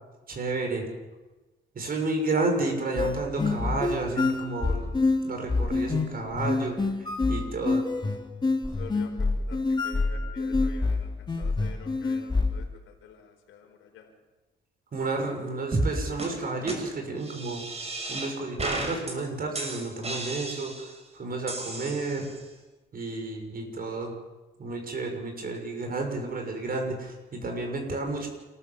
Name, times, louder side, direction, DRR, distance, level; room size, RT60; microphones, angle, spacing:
voice 1, 0.3-0.9 1.7-4.9 5.2-6.8 7.3-7.8 14.9-17.6 18.1-22.3 22.9-24.1 24.6-28.3, right 3 dB, 50° right, 4 dB, 6.5 m, -31 dB
sound 1, 3.0-12.6, left 3 dB, 20° left, 2.3 m, -27 dB
voice 2, 7.6-8.1 8.8-14.1, left 7 dB, 85° left, 2 dB, 4.9 m, -48 dB
sound 2, 15.7-15.9 16.2-16.3 16.7-16.8 17.2-18.3 18.6-19.1 19.5-20.9 21.5-22.4, right 2 dB, 30° right, 6.2 m, -32 dB
29.0 x 14.5 x 7.4 m, 1.2 s
cardioid pair, 90°, 20 cm